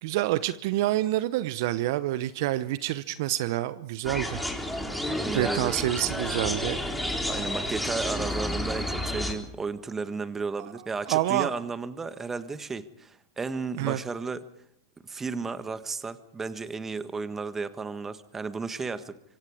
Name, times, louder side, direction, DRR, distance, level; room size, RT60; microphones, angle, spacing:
voice 1, 0.0-4.4 5.3-6.8 11.1-11.5 13.8-14.0, right 15 dB, 55° right, 15 dB, 0.8 m, -27 dB
sound 1, 4.0-9.3, left 1 dB, ahead, 3.9 m, -30 dB
voice 2, 4.8-5.7 7.3-14.4 15.0-19.1, right 4 dB, 15° right, 12 dB, 1.5 m, -34 dB
25.5 x 25.0 x 5.0 m, 0.72 s
hypercardioid pair, 100°, 2 cm